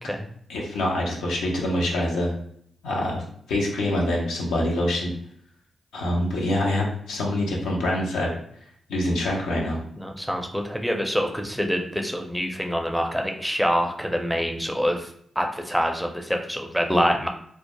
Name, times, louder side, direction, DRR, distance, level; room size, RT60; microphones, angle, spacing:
voice 1, 0.5-2.3 2.8-3.2 3.5-5.1 5.9-8.3 8.9-9.8, left 1 dB, 85° left, -2 dB, 0.5 m, -25 dB
voice 2, 10.0-15.1 15.4-17.3, equal, ahead, 3 dB, 0.5 m, -25 dB
2.2 x 2.0 x 2.8 m, 0.66 s
supercardioid pair, 40°, 0 cm